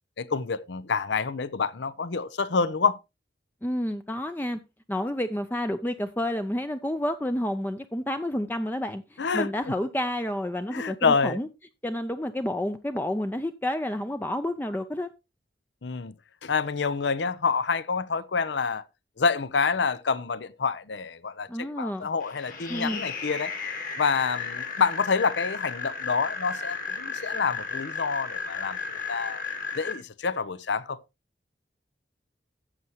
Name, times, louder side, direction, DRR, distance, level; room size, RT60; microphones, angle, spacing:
voice 1, 0.2-3.0 9.2-9.5 10.7-11.4 15.8-16.1 16.4-18.8 19.2-23.5 24.0-29.4 29.7-31.0, left 5 dB, 80° left, 0.6 m, -27 dB
voice 2, 3.6-4.6 4.9-11.5 11.8-15.1 21.5-22.1 22.7-23.0, left 1 dB, 10° left, 0.4 m, -30 dB
sound 1, 22.2-29.9, left 5 dB, 45° left, 2.1 m, -34 dB
14.0 x 7.8 x 3.0 m
head